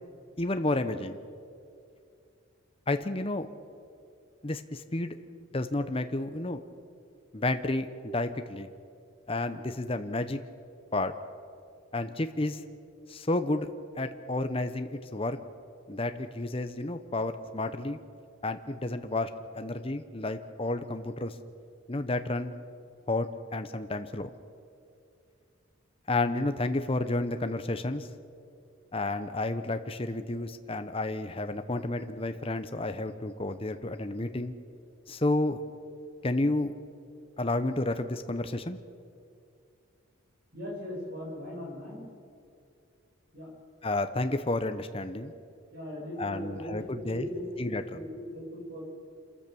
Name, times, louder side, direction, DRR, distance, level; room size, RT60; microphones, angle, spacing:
voice 1, 0.4-1.2 2.9-3.5 4.4-5.2 5.5-6.6 7.3-8.7 9.3-10.4 10.9-11.1 11.9-12.6 13.1-13.7 14.0-15.4 15.9-18.0 18.4-21.4 21.9-22.5 23.1-24.3 26.1-28.1 28.9-34.5 35.1-35.6 36.2-36.7 37.4-38.8 43.8-45.3 46.2-47.3 47.6-47.8, left 2 dB, 25° left, 9 dB, 0.8 m, -31 dB
voice 2, 40.5-42.1 43.3-43.5 45.7-48.8, left 1 dB, 50° right, -2 dB, 7.4 m, -39 dB
27.0 x 14.0 x 7.0 m, 2.4 s
head